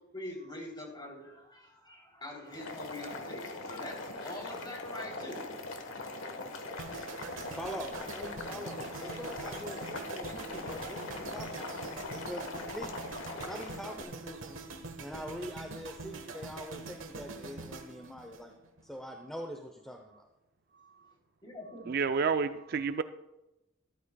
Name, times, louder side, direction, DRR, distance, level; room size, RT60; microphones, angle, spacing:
voice 1, 0.1-5.5 21.4-21.9, left 1 dB, 25° left, 3.3 m, -44 dB
Boiling, 2.5-14.0, left 2 dB, 90° left, 1.3 m, -41 dB
sound 1, 6.8-19.0 19.2-19.5, right 3 dB, 80° right, 1.2 m, -44 dB
voice 2, 7.6-11.8 12.1-13.1 13.4-14.6 15.0-18.5 18.8-20.3, equal, 5° left, 0.7 m, -44 dB
voice 3, 21.9-23.0, right 5 dB, 50° right, 0.4 m, -29 dB
14.0 x 13.0 x 2.3 m
head